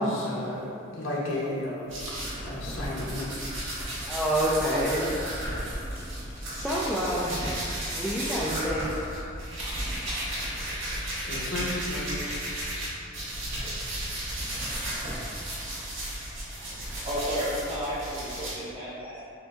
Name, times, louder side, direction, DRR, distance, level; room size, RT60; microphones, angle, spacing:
voice 1, 0.1-1.9 2.4-3.4 5.4-5.7 11.2-12.1, left 1 dB, 70° left, -5 dB, 0.8 m, -33 dB
sound 1, 1.9-12.8 13.1-18.5, right 1 dB, 65° right, 1.3 m, -34 dB
voice 2, 4.1-5.1 6.5-7.4 7.9-8.9, equal, ahead, -8 dB, 0.3 m, -27 dB
voice 3, 16.6-19.2, equal, 30° right, -10 dB, 1.4 m, -33 dB
6.9 x 2.6 x 2.3 m, 2.5 s
head